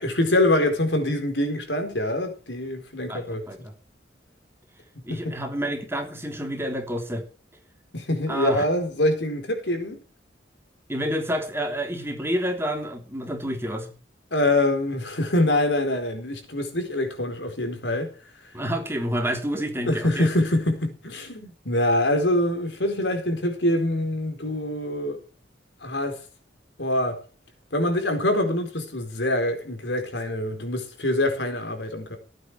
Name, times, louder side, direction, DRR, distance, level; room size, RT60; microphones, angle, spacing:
voice 1, 0.0-3.5 5.1-5.4 7.9-10.0 14.3-18.1 19.9-25.2 25.8-26.2 26.8-27.2 27.7-32.2, left 1 dB, 80° left, 4.5 m, -25 dB
voice 2, 3.1-3.6 5.0-7.2 8.3-8.6 10.9-13.9 18.5-20.3, equal, 15° right, 3.3 m, -29 dB
16.5 x 9.4 x 6.1 m
head